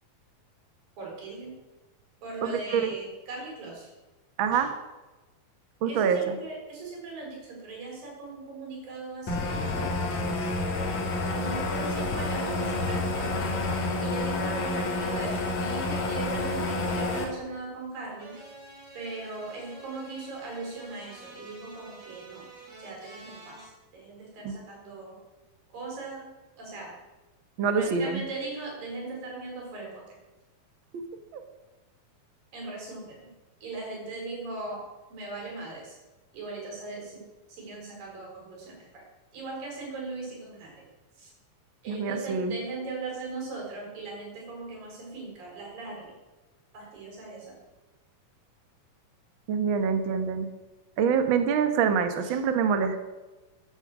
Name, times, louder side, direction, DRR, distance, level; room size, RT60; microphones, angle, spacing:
voice 1, 1.0-1.6 2.2-3.9 4.5-4.7 5.8-10.6 11.3-13.6 14.0-18.4 18.9-22.5 22.8-25.2 25.7-27.0 27.8-30.0 32.5-33.3 33.6-36.0 36.3-39.0 39.3-40.8 41.2-41.3 41.8-46.1 46.7-47.6 52.2-52.4, right 3 dB, 65° right, -1 dB, 6.1 m, -39 dB
voice 2, 2.4-2.9 4.4-4.7 5.8-6.4 24.4-24.5 27.6-28.2 30.9-31.0 31.3-31.4 41.9-42.5 49.5-50.5 51.0-53.0, right 6 dB, 90° right, 7 dB, 1.1 m, -25 dB
sound 1, 9.3-17.2, left 2 dB, 50° left, 3.1 m, -29 dB
sound 2, 18.2-23.7, right 2 dB, 40° right, 6.0 m, -48 dB
14.0 x 10.5 x 6.2 m, 1.1 s
omnidirectional pair, 4.3 m